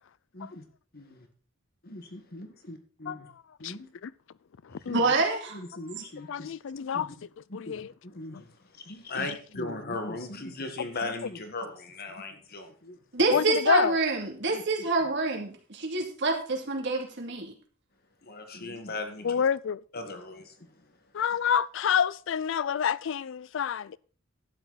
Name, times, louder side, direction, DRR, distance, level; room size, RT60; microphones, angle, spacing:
voice 1, 0.3-0.6 0.9-1.3 1.8-3.3 3.6-3.9 4.7-5.1 5.5-6.5 6.9-7.1 7.5-13.0 13.3-13.4 14.5-15.1 18.2-19.5 19.9-21.2, left 2 dB, 50° left, 1.6 m, -39 dB
voice 2, 4.9-5.6 13.1-17.5, right 3 dB, 60° right, 2.6 m, -27 dB
voice 3, 6.3-7.1 7.5-7.9 13.3-13.9 19.2-19.8 21.1-24.0, left 8 dB, 65° left, 0.4 m, -27 dB
12.0 x 9.1 x 4.0 m
head